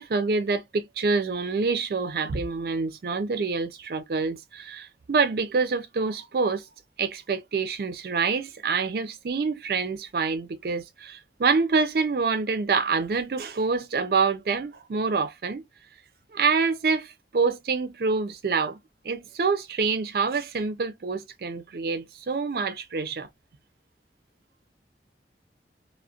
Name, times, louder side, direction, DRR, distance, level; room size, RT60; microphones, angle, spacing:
voice 1, 0.0-6.7 7.0-15.6 16.3-18.8 19.0-23.3, right 4 dB, 55° right, 0.4 m, -26 dB
2.4 x 2.0 x 2.5 m
head